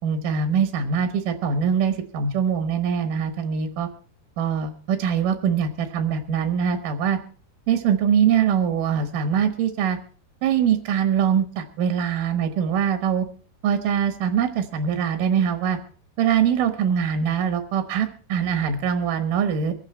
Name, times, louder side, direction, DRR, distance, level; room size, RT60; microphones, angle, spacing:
voice 1, 0.0-3.9 4.4-7.2 7.7-10.0 10.4-13.3 13.6-15.8 16.2-19.7, right 7 dB, 65° right, 7 dB, 2.6 m, -23 dB
24.0 x 9.0 x 4.4 m, 0.41 s
omnidirectional pair, 4.7 m